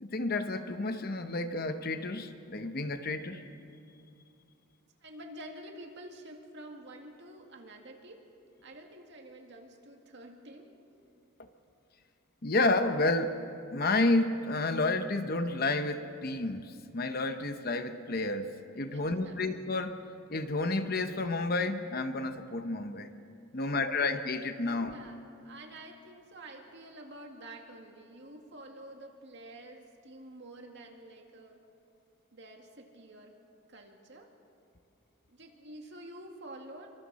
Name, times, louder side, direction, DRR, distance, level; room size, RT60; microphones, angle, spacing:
voice 1, 0.0-3.4 12.4-13.4 13.7-20.0 20.3-23.1 23.5-24.9, left 2 dB, 45° left, 8 dB, 0.9 m, -30 dB
voice 2, 5.0-8.2 8.6-10.7 18.9-19.4 23.6-24.1 24.7-31.6 32.3-33.3 33.7-34.3 35.3-36.9, right 1 dB, 55° right, 2 dB, 2.2 m, -49 dB
26.0 x 24.5 x 4.2 m, 2.5 s
head